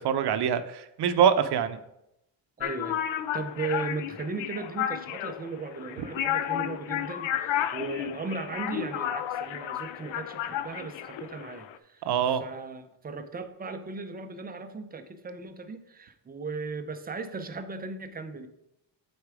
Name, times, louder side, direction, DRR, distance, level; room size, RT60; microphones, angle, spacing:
voice 1, 0.0-1.8 12.1-12.4, right 8 dB, 60° right, 11 dB, 0.7 m, -24 dB
sound 1, 2.6-11.8, left 11 dB, 90° left, 0.6 m, -32 dB
voice 2, 2.6-3.0 3.3-18.5, right 3 dB, 20° right, 8 dB, 0.5 m, -37 dB
8.1 x 4.3 x 4.8 m, 0.85 s
cardioid pair, 165°, 44 cm